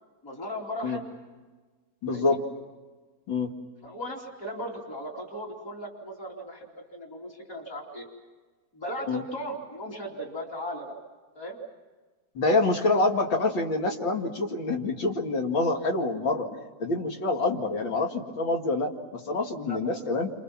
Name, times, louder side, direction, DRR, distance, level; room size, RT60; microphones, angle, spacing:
voice 1, 0.2-1.0 2.1-2.4 3.8-8.1 8.7-10.9 11.4-11.6 12.5-12.6 19.6-19.8, equal, 45° left, -2 dB, 3.7 m, -37 dB
voice 2, 2.0-2.4 3.3-3.5 9.1-9.2 12.3-16.5 16.8-20.3, left 3 dB, 85° left, 2 dB, 3.1 m, -26 dB
29.0 x 27.0 x 6.0 m, 1.4 s
omnidirectional pair, 2.0 m